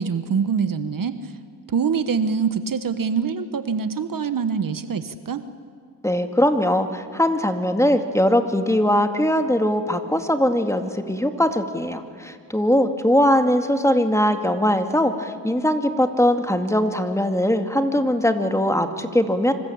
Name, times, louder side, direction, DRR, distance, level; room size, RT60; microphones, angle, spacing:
voice 1, 0.0-1.3 1.7-5.4, right 6 dB, 50° right, 10 dB, 1.4 m, -24 dB
voice 2, 6.0-19.5, left 1 dB, 5° left, 6 dB, 2.3 m, -21 dB
26.0 x 25.5 x 8.8 m, 2.1 s
cardioid pair, 85°, 43 cm